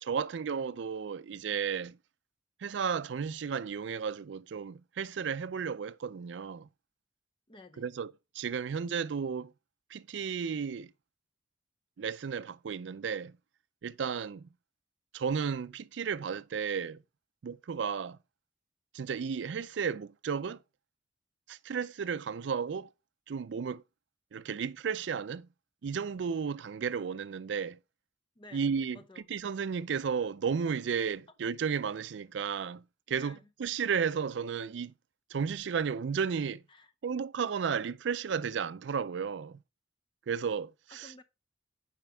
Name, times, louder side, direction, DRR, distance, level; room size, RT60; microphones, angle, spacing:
voice 1, 0.0-2.0 2.6-6.7 7.8-9.5 9.9-10.9 12.0-13.3 13.8-14.5 15.1-17.0 17.4-18.2 18.9-20.6 21.5-22.9 23.3-23.8 24.3-25.5 25.8-27.8 28.5-29.0 29.3-34.9 35.3-36.6 37.0-39.6 40.3-41.1, right 6 dB, 70° right, 0.4 m, -33 dB
voice 2, 7.5-7.9 28.4-29.3 33.1-33.5 36.7-36.9 40.9-41.2, left 2 dB, 25° left, 0.7 m, -54 dB
8.9 x 5.1 x 3.4 m
head